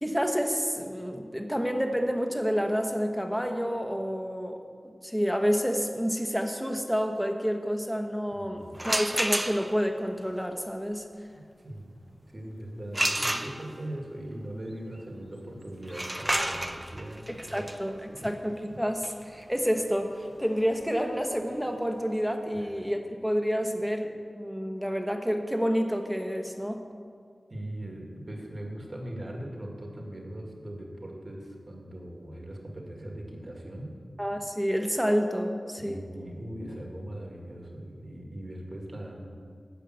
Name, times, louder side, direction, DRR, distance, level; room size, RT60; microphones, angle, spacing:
voice 1, 0.0-11.1 17.3-17.9 18.2-26.8 34.2-36.0, equal, 5° right, 4 dB, 1.0 m, -29 dB
voice 2, 8.3-8.8 11.3-12.0 12.3-18.3 18.7-18.8 22.5-22.7 27.5-33.9 35.8-39.3, right 1 dB, 45° right, 0 dB, 2.1 m, -40 dB
sound 1, 8.7-9.9 12.9-14.0 15.8-21.5, right 1 dB, 20° right, 0.6 m, -32 dB
10.5 x 5.6 x 7.9 m, 2.1 s
cardioid pair, 45°, 0 cm